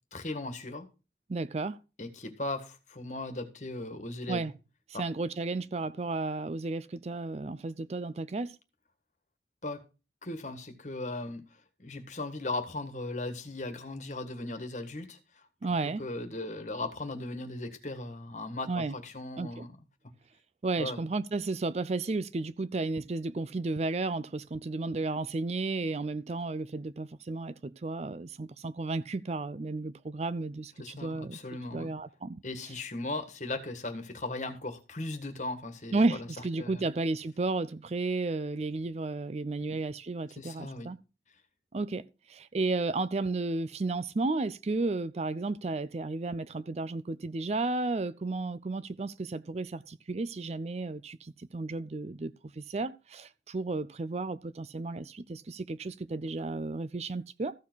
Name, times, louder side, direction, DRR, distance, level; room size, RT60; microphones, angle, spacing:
voice 1, 0.1-0.9 2.0-4.5 4.9-5.0 9.6-9.8 10.2-11.5 11.8-15.4 15.8-19.8 20.8-21.1 30.8-31.9 32.4-36.3 36.6-36.9 39.6-39.8 40.4-40.9, left 2 dB, 40° left, 1.6 m, -38 dB
voice 2, 1.3-1.8 4.3-4.5 4.9-8.6 15.6-16.0 18.7-18.9 19.4-19.7 20.6-31.4 31.7-32.4 35.9-41.0 41.7-57.5, right 3 dB, 35° right, 0.4 m, -33 dB
14.5 x 4.8 x 6.2 m
head